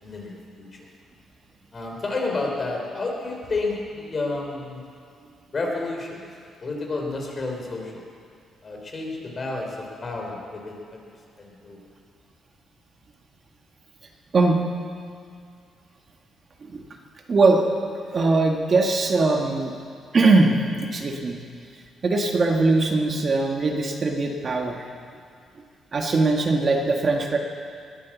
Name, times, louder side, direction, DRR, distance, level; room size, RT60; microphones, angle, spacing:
voice 1, 0.0-0.8 1.7-4.8 5.5-6.2 6.6-8.1 8.6-11.0 11.4-11.8, left 3 dB, 35° left, 0 dB, 3.6 m, -30 dB
voice 2, 17.3-17.6 18.1-19.7 20.1-21.4 22.0-24.8 25.9-27.4, right 3 dB, 40° right, 2 dB, 1.7 m, -21 dB
20.0 x 9.3 x 7.2 m, 2.3 s
cardioid pair, 90°, 0 cm